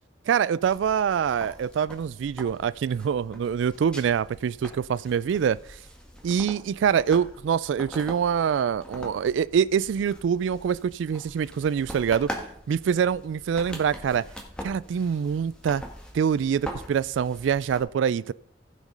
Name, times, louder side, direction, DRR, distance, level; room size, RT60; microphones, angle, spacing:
voice 1, 0.3-5.6 6.2-12.3 12.7-14.2 14.6-15.8 16.1-18.3, right 7 dB, 80° right, 0.3 m, -25 dB
sound 1, 0.6-17.8, equal, 5° left, 1.4 m, -43 dB
15.5 x 5.1 x 5.3 m
head